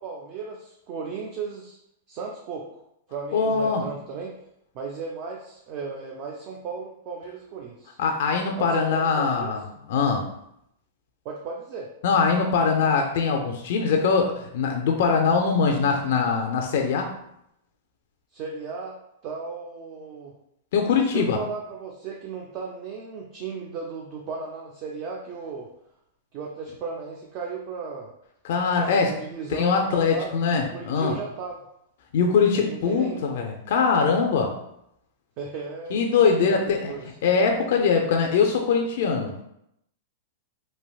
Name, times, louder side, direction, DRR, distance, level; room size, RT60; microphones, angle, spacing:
voice 1, 0.0-1.8 2.1-2.8 3.1-4.3 4.7-8.0 8.6-9.6 11.2-11.9 18.3-19.0 19.2-20.3 21.1-25.7 26.3-28.1 28.8-31.6 32.5-33.2 35.4-36.0 36.5-37.0, right 5 dB, 35° right, -1 dB, 0.4 m, -35 dB
voice 2, 3.3-3.8 8.0-9.6 9.9-10.3 12.0-17.1 20.7-21.4 28.4-29.2 29.5-31.1 32.1-34.6 35.9-36.9 37.2-39.4, left 5 dB, 65° left, 2 dB, 0.4 m, -22 dB
3.3 x 2.6 x 2.3 m, 0.78 s
supercardioid pair, 155°, 0 cm